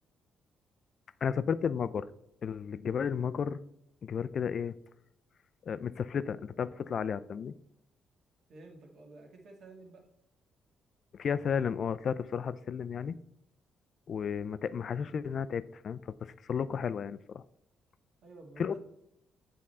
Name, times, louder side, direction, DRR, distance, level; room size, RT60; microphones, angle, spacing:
voice 1, 1.2-2.1 2.4-3.6 4.0-4.7 5.6-7.5 11.1-13.2 14.1-17.4 18.6-18.8, left 7 dB, 55° left, 15 dB, 0.3 m, -33 dB
voice 2, 8.5-10.1 18.2-18.8, right 2 dB, 65° right, 1 dB, 1.7 m, -51 dB
8.4 x 3.7 x 4.2 m, 0.83 s
cardioid pair, 90°, 0 cm